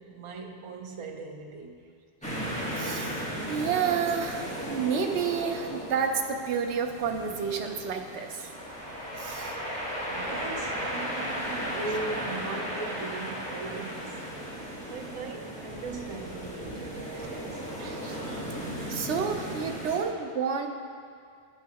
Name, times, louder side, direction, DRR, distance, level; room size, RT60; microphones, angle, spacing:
voice 1, 0.0-1.9 10.1-14.2 14.8-17.6, right 3 dB, 40° right, 3 dB, 0.5 m, -39 dB
sound 1, 2.2-20.0, equal, 5° left, 1.3 m, -36 dB
voice 2, 2.7-8.5 9.1-9.6 17.8-18.4 18.9-20.7, right 6 dB, 80° right, 4 dB, 0.9 m, -30 dB
10.5 x 6.2 x 2.9 m, 2.2 s
omnidirectional pair, 1.2 m